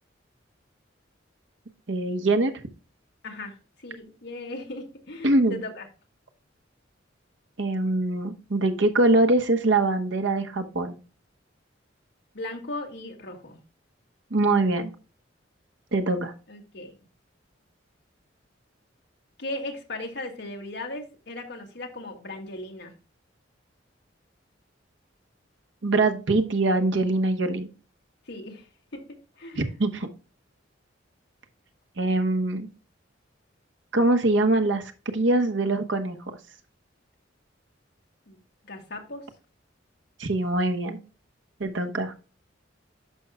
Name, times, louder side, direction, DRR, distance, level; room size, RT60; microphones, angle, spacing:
voice 1, 1.9-2.5 5.2-5.6 7.6-11.0 14.3-14.9 15.9-16.3 25.8-27.7 29.6-30.1 32.0-32.7 33.9-34.8 35.1-36.4 40.2-41.0 41.6-42.1, right 2 dB, 70° right, 6 dB, 1.0 m, -23 dB
voice 2, 3.2-5.9 12.3-13.6 16.5-17.0 19.4-22.9 28.3-28.7 28.9-29.0 29.4-29.7 38.3-38.4 38.7-39.2, left 2 dB, 60° left, 2 dB, 1.9 m, -37 dB
11.0 x 6.2 x 2.2 m, 0.35 s
head